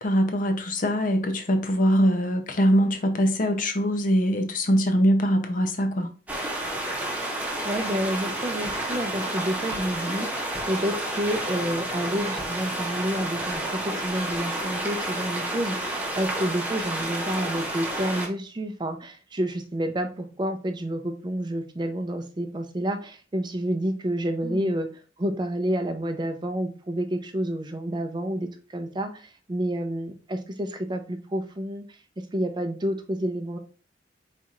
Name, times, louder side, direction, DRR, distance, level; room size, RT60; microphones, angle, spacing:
voice 1, 0.0-6.1 24.4-24.8, equal, 45° left, 0.6 m, -23 dB
sound 1, 6.3-18.3, right 1 dB, 10° right, 0.9 m, -30 dB
voice 2, 7.6-24.9 25.2-31.8 32.3-33.6, right 1 dB, 25° right, 0.4 m, -29 dB
4.5 x 4.1 x 2.4 m
head